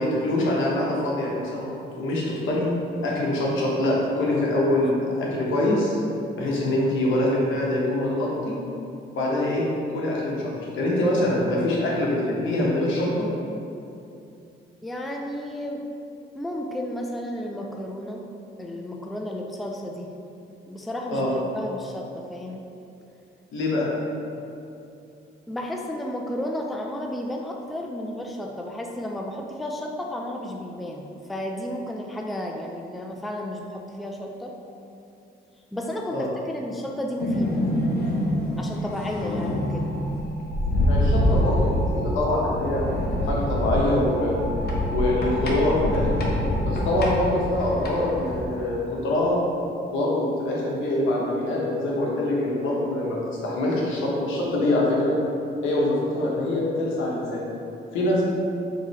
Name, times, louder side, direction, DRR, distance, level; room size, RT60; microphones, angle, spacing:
voice 1, 0.0-2.7 3.0-6.0 6.4-8.5 9.1-9.7 9.9-13.3 21.1-21.3 23.5-23.9 36.1-36.3 40.9-42.9 43.3-44.4 44.9-46.1 46.6-49.4 49.9-55.2 55.6-57.4 57.9-58.3, left 1 dB, 80° left, -4 dB, 1.1 m, -24 dB
voice 2, 14.8-15.9 16.3-18.3 18.6-20.1 20.7-22.6 25.5-31.0 31.3-34.6 35.7-37.7 38.6-39.9, left 1 dB, ahead, 1 dB, 0.3 m, -32 dB
sound 1, 37.2-48.4, left 1 dB, 55° left, 0.8 m, -25 dB
3.8 x 3.0 x 4.2 m, 2.6 s
cardioid pair, 90°, 20 cm